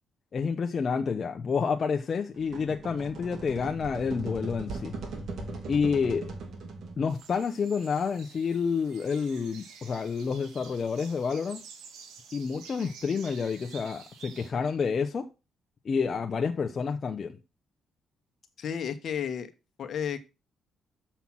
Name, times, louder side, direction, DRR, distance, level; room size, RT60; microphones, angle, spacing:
voice 1, 0.3-4.9 5.7-6.3 7.0-11.6 12.3-15.3 15.8-17.4, left 5 dB, 45° left, 0.8 m, -29 dB
sound 1, 2.4-7.2, right 3 dB, 65° right, 2.3 m, -39 dB
sound 2, 7.1-14.5, right 6 dB, 90° right, 1.8 m, -50 dB
voice 2, 18.6-19.5 19.8-20.2, left 8 dB, 60° left, 1.2 m, -32 dB
7.2 x 5.7 x 6.1 m
cardioid pair, 90°, 0 cm